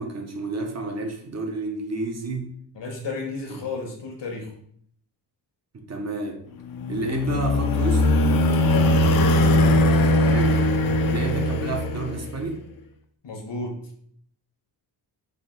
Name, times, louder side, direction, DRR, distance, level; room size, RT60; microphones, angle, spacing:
voice 1, 0.0-2.5 5.7-6.4 6.9-8.1 10.3-10.7 11.0-12.6, right 3 dB, 40° right, 3 dB, 0.6 m, -30 dB
voice 2, 2.7-4.5 8.6-8.9 13.2-13.8, left 3 dB, 75° left, 2 dB, 1.1 m, -32 dB
sound 1, 6.7-12.4, left 1 dB, 55° left, 0.5 m, -20 dB
3.4 x 2.6 x 3.9 m, 0.64 s
wide cardioid pair, 115°, 43 cm